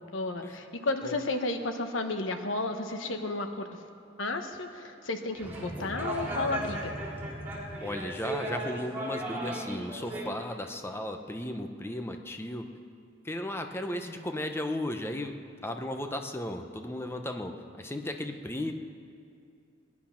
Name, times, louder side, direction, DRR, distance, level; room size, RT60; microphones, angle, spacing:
voice 1, 0.1-3.8 4.2-6.9, left 2 dB, 85° left, 6 dB, 1.1 m, -32 dB
sound 1, 5.3-10.3, right 1 dB, 10° right, 3.3 m, -36 dB
voice 2, 5.7-6.1 7.8-12.7 13.2-15.4 15.6-18.7, left 1 dB, 15° left, 5 dB, 0.8 m, -35 dB
19.5 x 10.5 x 5.8 m, 2.5 s
head